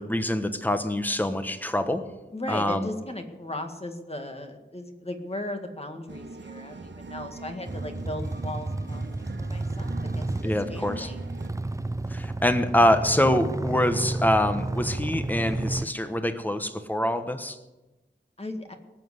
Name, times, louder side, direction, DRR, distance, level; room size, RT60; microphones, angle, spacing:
voice 1, 0.0-2.0 2.5-2.9 10.4-11.1 12.1-17.6, left 1 dB, 10° left, 9 dB, 1.1 m, -25 dB
voice 2, 2.3-11.2 18.4-18.7, left 1 dB, 30° left, 5 dB, 1.9 m, -37 dB
sound 1, 6.1-11.5, right 3 dB, 70° right, 1.5 m, -42 dB
sound 2, 7.7-15.9, right 2 dB, 15° right, 0.5 m, -31 dB
18.5 x 7.7 x 8.1 m, 1.1 s
wide cardioid pair, 85°, 19 cm